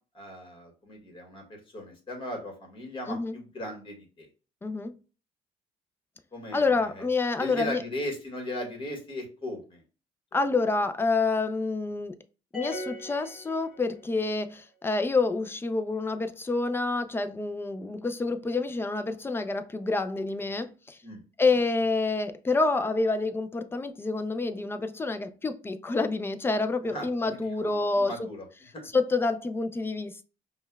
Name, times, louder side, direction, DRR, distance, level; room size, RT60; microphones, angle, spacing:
voice 1, 0.1-4.3 6.3-7.0 7.4-9.8 21.0-21.2 21.5-21.6 26.8-28.4 28.7-28.9, left 1 dB, 30° left, 1.5 m, -38 dB
voice 2, 4.6-4.9 6.5-7.8 10.3-12.1 12.5-21.0 21.4-28.1 28.9-30.2, left 3 dB, 15° left, 0.3 m, -28 dB
sound 1, 12.5-14.3, left 2 dB, 5° right, 1.5 m, -39 dB
5.2 x 2.2 x 2.2 m
cardioid pair, 110°, 17 cm